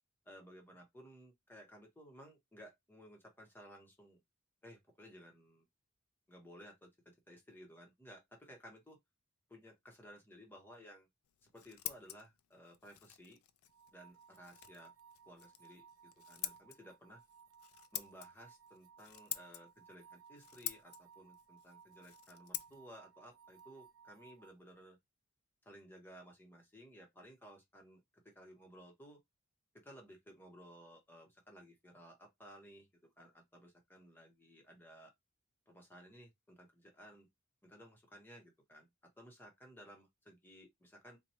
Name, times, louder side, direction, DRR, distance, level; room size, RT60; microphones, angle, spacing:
voice 1, 0.3-4.2 4.6-5.6 6.3-6.9 7.3-9.0 9.5-11.1 11.5-13.4 13.9-14.9 15.3-17.2 17.9-25.0 25.6-29.2 29.8-32.9 33.2-35.1 35.7-37.3 37.6-38.9 39.2-41.2, equal, 10° left, 0.9 m, -57 dB
Scissors, 11.2-24.8, left 13 dB, 85° left, 0.4 m, -49 dB
sound 1, 13.7-24.5, right 7 dB, 65° right, 0.5 m, -62 dB
2.9 x 2.2 x 4.2 m
head